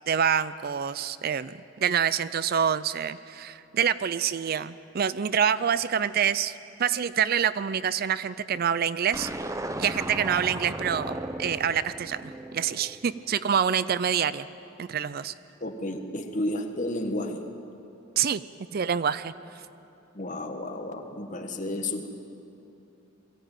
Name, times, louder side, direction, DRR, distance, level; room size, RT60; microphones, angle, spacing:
voice 1, 0.1-6.5 6.8-9.3 9.8-14.5 14.8-15.3 18.2-18.4 18.7-19.3, right 8 dB, 50° right, 16 dB, 0.4 m, -26 dB
sound 1, 9.1-13.5, right 1 dB, 15° right, 0.7 m, -36 dB
voice 2, 15.6-17.4 20.1-22.1, left 1 dB, 40° left, 5 dB, 1.5 m, -32 dB
22.5 x 15.0 x 9.0 m, 2.8 s
head